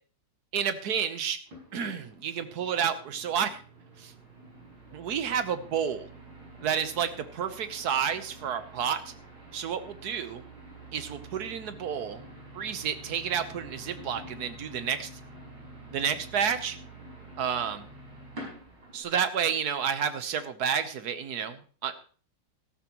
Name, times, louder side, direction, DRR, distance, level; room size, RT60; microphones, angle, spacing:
voice 1, 0.5-1.4 1.7-3.6 4.0-4.1 4.9-6.1 6.6-9.1 9.5-10.4 10.9-12.2 12.5-15.1 15.9-16.8 17.4-17.8 18.9-21.9, right 8 dB, 60° right, 10 dB, 1.5 m, -30 dB
sound 1, 1.5-19.0, right 2 dB, 75° right, 6.0 m, -48 dB
14.5 x 13.0 x 3.0 m, 0.40 s
omnidirectional pair, 2.0 m